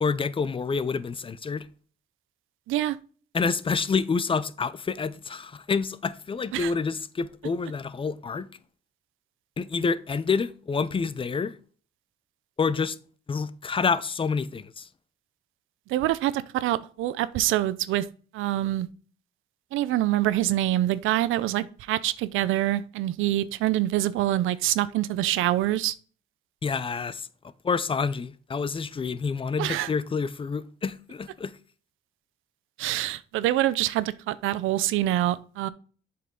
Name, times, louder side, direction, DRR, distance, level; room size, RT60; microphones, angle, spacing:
voice 1, 0.0-1.6 3.3-8.5 9.6-11.5 12.6-13.0 13.3-14.9 26.6-27.3 27.6-31.5, left 5 dB, 25° left, 0.6 m, -28 dB
voice 2, 15.9-18.1 18.3-18.9 19.7-25.9 29.6-29.9 32.8-35.7, right 14 dB, 85° right, 0.5 m, -25 dB
7.7 x 5.7 x 3.7 m
cardioid pair, 90°, 20 cm